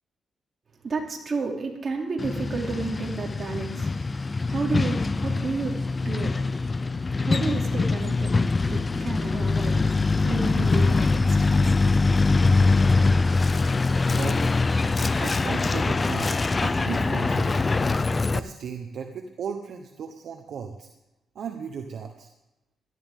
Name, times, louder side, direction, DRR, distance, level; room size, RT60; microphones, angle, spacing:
voice 1, 0.8-3.9 4.5-6.4 7.2-8.3 8.7-9.8 10.2-11.4 11.6-11.7 12.2-12.3, right 4 dB, 40° right, 0 dB, 2.9 m, -31 dB
Truck, 2.2-18.4, left 3 dB, 30° left, 0.5 m, -23 dB
voice 2, 14.1-14.5 15.2-17.7 18.3-20.9 21.3-22.3, right 6 dB, 70° right, 4 dB, 1.1 m, -36 dB
17.5 x 13.0 x 3.7 m, 0.92 s
cardioid pair, 105°, 0 cm